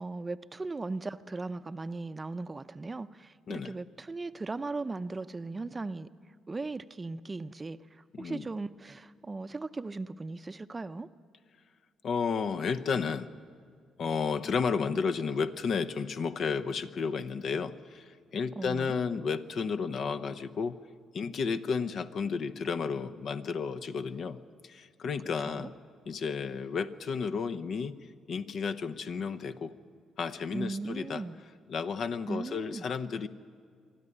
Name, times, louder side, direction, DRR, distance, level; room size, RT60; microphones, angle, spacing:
voice 1, 0.0-6.1 6.5-7.8 8.2-11.1 18.6-18.9 25.5-25.7 30.5-31.4 32.3-32.9, right 3 dB, 25° right, 12 dB, 0.6 m, -37 dB
voice 2, 8.1-8.5 12.0-13.3 14.0-20.8 21.1-25.7 26.1-28.0 28.3-29.7 30.2-31.2 31.7-33.3, left 5 dB, 60° left, 11 dB, 0.8 m, -32 dB
24.5 x 12.5 x 9.9 m, 2.1 s
cardioid pair, 90°, 0 cm